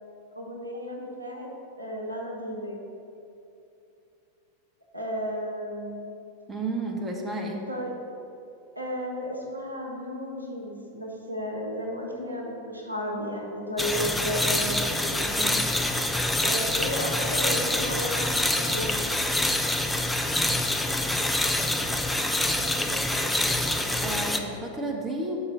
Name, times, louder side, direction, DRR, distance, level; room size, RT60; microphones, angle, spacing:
voice 1, 0.3-1.5 1.8-2.8 4.9-6.2 7.7-7.9 8.8-14.8 16.4-19.0, equal, 85° right, -1 dB, 1.0 m, -33 dB
voice 2, 6.5-7.7 15.0-15.7 24.0-25.4, right 2 dB, 15° right, 0 dB, 0.9 m, -32 dB
sound 1, 13.8-24.4, left 1 dB, 5° left, 0.4 m, -26 dB
5.8 x 5.4 x 5.5 m, 2.8 s
figure-of-eight pair, 90°, 0 cm